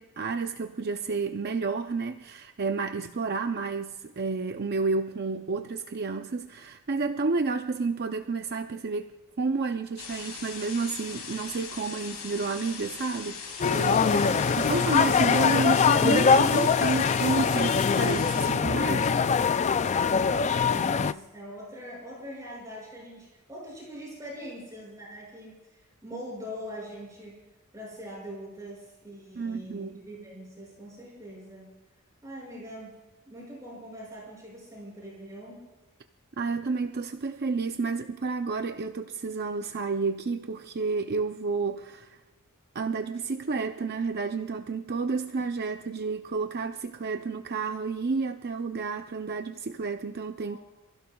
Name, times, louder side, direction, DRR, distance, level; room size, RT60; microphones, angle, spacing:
voice 1, 0.0-14.2 14.6-19.1 29.4-30.0 36.4-42.2 42.7-50.6, right 4 dB, 45° right, 0.6 m, -30 dB
sound 1, 10.0-18.5, left 5 dB, 80° left, 3.1 m, -40 dB
sound 2, 13.6-21.1, left 6 dB, 30° left, 0.3 m, -23 dB
voice 2, 13.9-14.4 19.9-27.4 27.7-31.8 32.2-32.9 33.3-35.6 50.4-50.6, equal, 15° right, 6.2 m, -43 dB
28.5 x 16.0 x 2.3 m
head